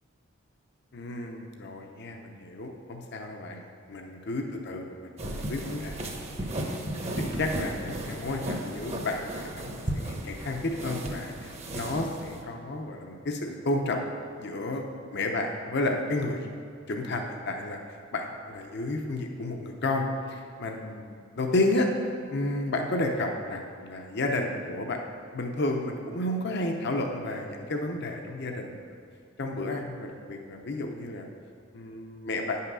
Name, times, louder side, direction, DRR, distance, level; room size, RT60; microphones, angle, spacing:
voice 1, 0.9-6.8 7.2-9.6 9.9-14.1 14.4-14.8 15.1-16.5 16.9-17.8 18.1-21.9 22.3-28.8 29.4-31.3 31.7-32.6, left 2 dB, 60° left, 3 dB, 0.7 m, -32 dB
sound 1, 5.2-12.4, right 1 dB, 35° right, 1.0 m, -35 dB
9.2 x 5.7 x 6.1 m, 2.4 s
head